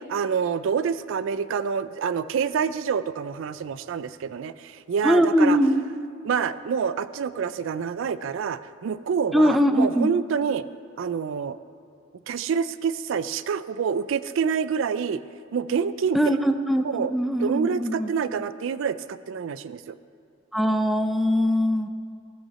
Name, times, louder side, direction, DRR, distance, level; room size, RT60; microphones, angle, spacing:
voice 1, 0.1-5.6 6.2-10.6 11.0-11.6 12.3-15.2 15.5-16.4 16.8-17.1 17.4-20.0, right 6 dB, 65° right, 14 dB, 0.4 m, -27 dB
voice 2, 5.0-5.8 9.3-10.1 16.1-18.1 20.5-21.9, equal, ahead, 7 dB, 0.5 m, -21 dB
15.0 x 5.6 x 6.9 m, 2.5 s
head